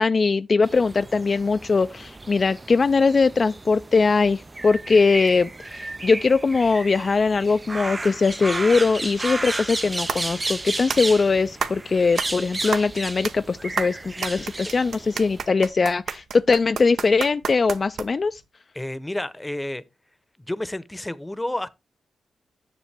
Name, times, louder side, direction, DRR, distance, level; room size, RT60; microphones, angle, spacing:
voice 1, 0.0-18.4, left 4 dB, 50° left, 0.3 m, -21 dB
sound 1, 0.6-15.4, right 2 dB, 30° right, 0.3 m, -33 dB
sound 2, 9.6-18.4, right 6 dB, 75° right, 0.7 m, -33 dB
voice 2, 18.7-19.8 20.5-21.7, left 1 dB, 15° left, 0.7 m, -30 dB
7.3 x 6.8 x 3.3 m
supercardioid pair, 45°, 0 cm